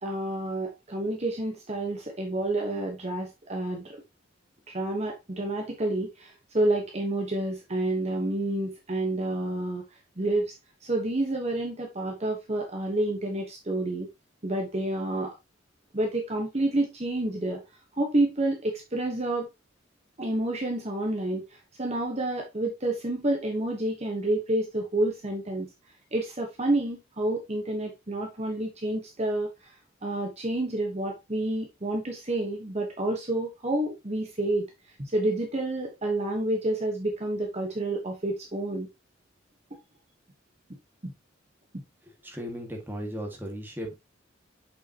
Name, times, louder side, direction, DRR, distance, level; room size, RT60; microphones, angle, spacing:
voice 1, 0.0-4.0 4.7-9.8 10.2-10.5 10.8-14.1 14.4-15.3 15.9-17.6 18.0-19.5 20.2-25.7 26.1-29.7 30.0-34.6 35.0-38.9 41.0-41.1 41.7-41.8, right 1 dB, 35° right, 1.2 m, -29 dB
voice 2, 42.0-43.9, equal, 10° right, 1.9 m, -36 dB
6.6 x 5.7 x 2.9 m
head